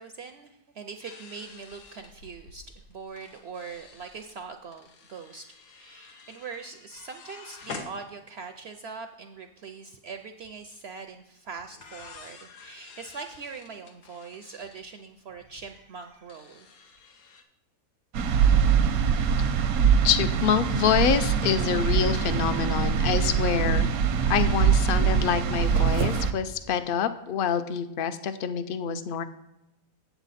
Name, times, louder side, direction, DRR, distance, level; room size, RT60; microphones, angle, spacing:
voice 1, 0.0-5.5 5.7-16.8, right 5 dB, 65° right, 6 dB, 0.6 m, -42 dB
sound 1, 1.0-8.6 8.9-9.0 9.2-9.6 11.0-11.1 11.6-17.4, left 4 dB, 80° left, 1.4 m, -48 dB
sound 2, 18.1-26.3, right 7 dB, 85° right, 1.1 m, -23 dB
voice 2, 20.0-23.9 24.3-29.2, left 8 dB, 65° left, 11 dB, 0.5 m, -26 dB
8.2 x 7.9 x 4.1 m, 0.90 s
omnidirectional pair, 1.5 m